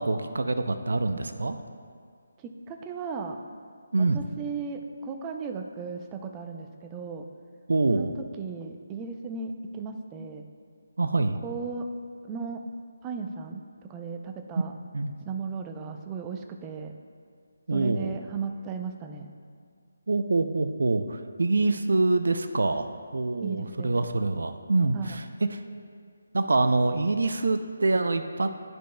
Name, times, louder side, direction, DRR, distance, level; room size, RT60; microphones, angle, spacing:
voice 1, 0.0-1.6 3.9-4.2 7.7-8.1 11.0-11.4 14.9-15.1 17.7-18.2 20.1-22.9 23.1-25.2 25.5-25.6 26.3-28.5, right 3 dB, 75° right, 8 dB, 0.4 m, -25 dB
voice 2, 2.4-3.4 4.0-7.3 7.9-8.1 8.4-10.4 11.4-11.9 12.2-12.6 13.0-13.6 13.9-14.7 15.3-16.9 17.7-19.3 23.4-23.9 24.9-25.2, right 5 dB, 15° right, 4 dB, 0.5 m, -36 dB
12.0 x 5.1 x 2.2 m, 2.1 s
figure-of-eight pair, 160°, 0 cm